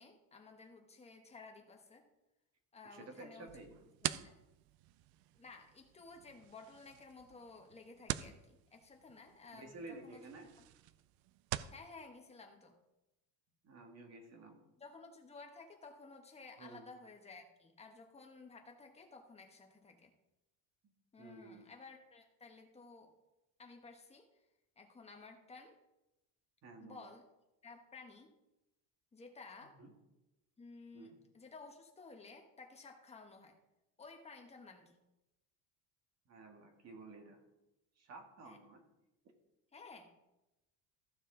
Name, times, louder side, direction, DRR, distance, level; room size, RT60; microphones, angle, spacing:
voice 1, 0.0-2.0 2.7-3.5 4.0-4.3 5.3-10.5 11.7-12.7 14.8-20.1 21.1-23.1 23.6-24.3 24.8-25.8 26.8-27.2 27.6-28.3 29.1-29.8 30.6-33.5 34.0-35.0 38.4-38.6 39.7-40.1, left 3 dB, 15° left, 3 dB, 1.2 m, -55 dB
voice 2, 2.9-3.8 9.5-10.5 13.6-14.7 16.6-16.8 20.8-20.9 21.2-21.6 26.6-27.0 29.6-29.9 30.9-31.2 36.3-37.4 38.0-38.8, right 3 dB, 40° right, 4 dB, 1.8 m, -52 dB
sound 1, 3.5-11.8, right 14 dB, 70° right, 0.5 m, -46 dB
14.5 x 6.3 x 3.9 m, 0.96 s
cardioid pair, 155°, 39 cm